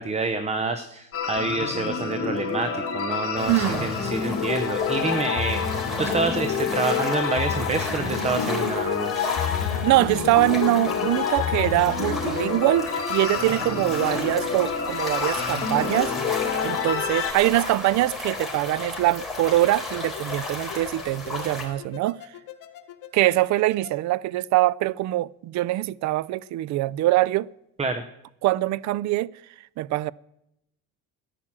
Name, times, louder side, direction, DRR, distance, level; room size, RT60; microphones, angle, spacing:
voice 1, 0.0-5.6 6.0-9.3 27.8-28.0, right 3 dB, 20° right, 0.8 m, -28 dB
sound 1, 1.1-17.3, left 6 dB, 40° left, 2.5 m, -28 dB
sound 2, 3.4-21.7, left 2 dB, ahead, 3.9 m, -34 dB
voice 2, 3.5-3.9 9.8-16.1 16.6-22.2 23.1-27.5 28.4-29.3 29.8-30.1, right 17 dB, 55° right, 0.5 m, -23 dB
sound 3, 15.2-24.0, left 12 dB, 65° left, 1.4 m, -43 dB
13.5 x 10.0 x 7.4 m
cardioid pair, 115°, 35 cm